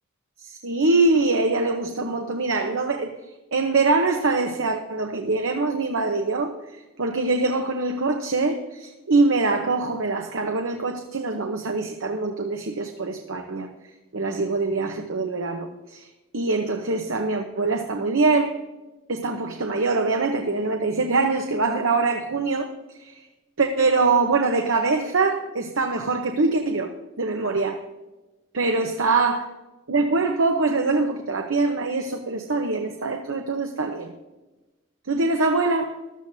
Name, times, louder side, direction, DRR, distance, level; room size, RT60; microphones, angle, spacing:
voice 1, 0.4-3.1 3.5-13.7 14.1-16.1 16.3-18.6 19.1-22.7 23.0-23.1 23.6-26.9 27.2-27.8 28.5-29.5 29.9-34.1 35.1-36.0, right 3 dB, 80° right, 4 dB, 1.0 m, -23 dB
15.0 x 12.5 x 2.7 m, 1.1 s
head